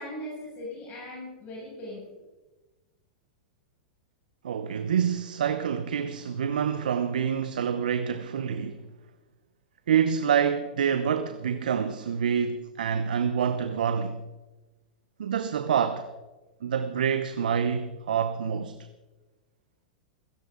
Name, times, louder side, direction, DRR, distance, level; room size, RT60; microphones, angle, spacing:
voice 1, 0.0-2.2, left 1 dB, 40° left, 6.7 m, -39 dB
voice 2, 4.4-8.8 9.9-14.2 15.2-16.1 16.6-18.8, right 7 dB, 80° right, 0.9 m, -27 dB
16.5 x 16.0 x 3.9 m
hypercardioid pair, 110°, 5 cm